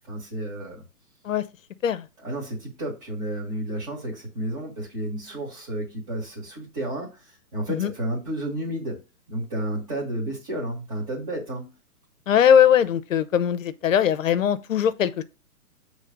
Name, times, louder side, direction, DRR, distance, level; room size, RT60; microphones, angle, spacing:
voice 1, 0.1-0.8 2.2-9.0 9.3-11.7, right 1 dB, 20° right, 1.5 m, -31 dB
voice 2, 12.3-15.2, left 9 dB, 55° left, 0.7 m, -20 dB
6.6 x 3.2 x 5.1 m
hypercardioid pair, 160°, 46 cm